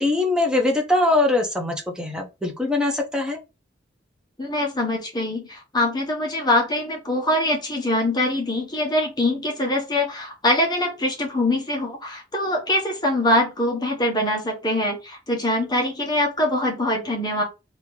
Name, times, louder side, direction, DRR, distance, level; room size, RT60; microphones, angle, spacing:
voice 1, 0.0-3.4, left 2 dB, 5° right, 0.8 m, -22 dB
voice 2, 4.4-17.4, left 1 dB, 25° left, 0.9 m, -23 dB
3.6 x 2.8 x 3.1 m
head